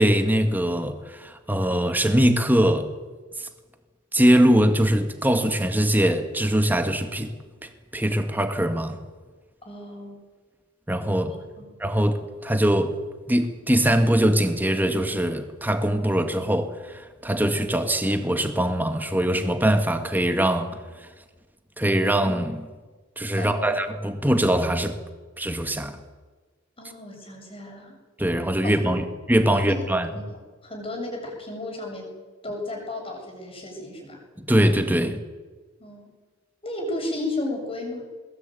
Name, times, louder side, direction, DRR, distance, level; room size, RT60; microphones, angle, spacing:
voice 1, 0.0-2.9 3.4-3.5 4.1-7.3 7.9-9.0 10.9-11.4 11.8-13.0 13.3-20.8 21.8-22.7 23.2-25.0 25.4-26.0 28.2-30.1 34.4-35.2, right 1 dB, 10° right, 7 dB, 2.0 m, -22 dB
voice 2, 9.6-10.2 11.3-11.7 23.4-23.8 26.8-28.0 28.9-29.0 29.6-30.4 30.6-32.1 32.4-34.2 35.8-36.1 36.6-38.1, left 2 dB, 30° left, 1 dB, 7.5 m, -34 dB
21.5 x 21.0 x 9.3 m, 1.4 s
head